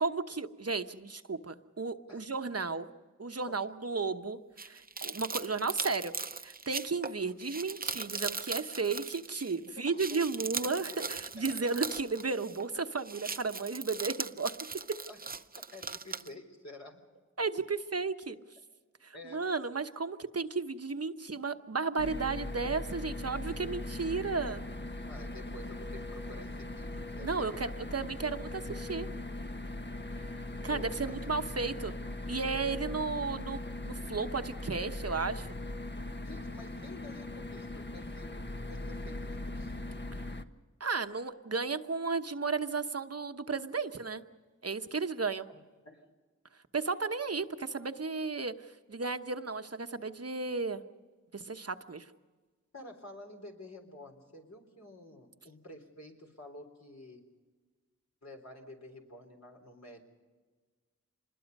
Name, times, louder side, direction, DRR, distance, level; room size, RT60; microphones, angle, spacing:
voice 1, 0.0-2.9 3.2-6.1 6.4-14.5 17.4-18.4 19.0-24.6 27.2-29.1 30.1-30.3 30.6-31.9 32.3-35.5 40.8-44.2 44.6-45.5 46.7-50.8 51.3-52.1, right 4 dB, 50° right, 8 dB, 1.1 m, -34 dB
sound 1, 4.6-9.6 9.9-12.7 13.0-16.3, right 4 dB, 30° right, 0.6 m, -39 dB
voice 2, 9.8-10.3 10.6-11.7 15.1-15.3 15.7-17.0 19.1-19.5 25.1-27.6 30.7-31.2 36.2-38.4 38.7-39.8 45.5-46.1 52.7-57.2 58.2-60.0, left 1 dB, 60° left, 2 dB, 3.8 m, -50 dB
sound 2, 22.0-40.4, left 2 dB, 35° left, 1.1 m, -40 dB
26.0 x 21.0 x 5.4 m, 1.4 s
wide cardioid pair, 55°, 31 cm